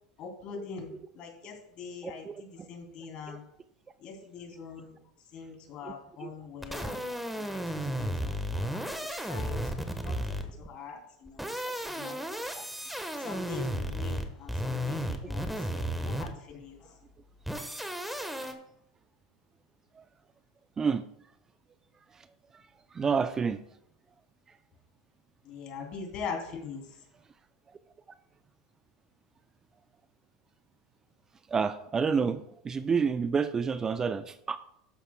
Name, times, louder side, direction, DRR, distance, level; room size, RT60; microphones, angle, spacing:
voice 1, 0.2-3.4 4.0-5.0 5.3-7.6 8.0-10.1 10.6-11.4 12.0-12.2 13.2-17.0 18.4-18.6 25.4-26.8, left 5 dB, 50° left, 2 dB, 2.9 m, -43 dB
voice 2, 2.0-2.7 5.8-6.3 12.6-12.7 15.2-15.3 20.0-20.1 20.8-21.0 22.9-23.6 31.5-34.6, right 5 dB, 25° right, 12 dB, 0.5 m, -29 dB
sound 1, 6.6-10.7 11.3-16.5 17.5-18.5, equal, 5° right, 1.2 m, -34 dB
12.5 x 9.1 x 2.2 m, 0.74 s
hypercardioid pair, 90°, 2 cm